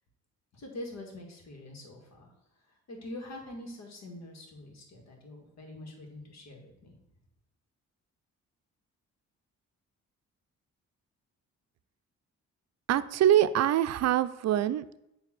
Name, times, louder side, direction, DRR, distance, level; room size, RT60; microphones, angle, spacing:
voice 1, 0.5-2.3 2.9-7.0, left 1 dB, 65° left, 1 dB, 2.2 m, -44 dB
voice 2, 12.9-15.0, right 11 dB, 60° right, 12 dB, 0.5 m, -24 dB
8.9 x 3.5 x 6.1 m, 0.84 s
cardioid pair, 110°, 29 cm